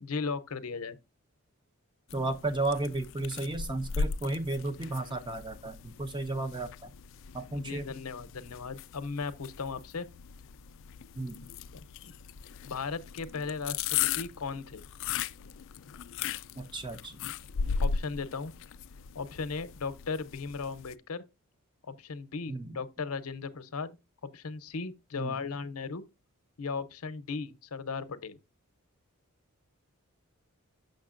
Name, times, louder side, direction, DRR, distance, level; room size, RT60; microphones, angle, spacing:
voice 1, 0.0-1.0 7.5-10.1 11.7-12.1 12.6-14.8 17.8-18.5 19.1-21.2 21.8-23.9 24.3-26.0 26.6-28.4, left 4 dB, 85° left, 0.7 m, -37 dB
sound 1, 2.1-20.9, left 6 dB, 60° left, 0.3 m, -38 dB
voice 2, 2.1-6.9 7.3-7.9 11.2-11.4 16.6-17.2 22.5-22.8 25.2-25.3, right 2 dB, 20° right, 0.7 m, -33 dB
6.5 x 6.4 x 2.4 m
head